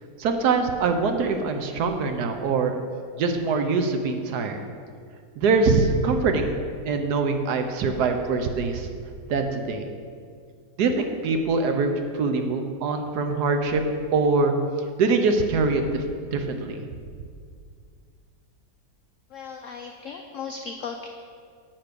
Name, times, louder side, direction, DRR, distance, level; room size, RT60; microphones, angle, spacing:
voice 1, 0.2-2.7 3.2-4.6 5.4-6.6 6.8-8.9 9.3-9.9 10.8-13.8 14.1-14.5 15.0-16.0 16.3-16.8, right 4 dB, 70° right, 6 dB, 1.2 m, -23 dB
voice 2, 19.3-21.1, left 5 dB, 80° left, 5 dB, 0.7 m, -36 dB
7.8 x 5.9 x 6.6 m, 2.1 s
omnidirectional pair, 2.0 m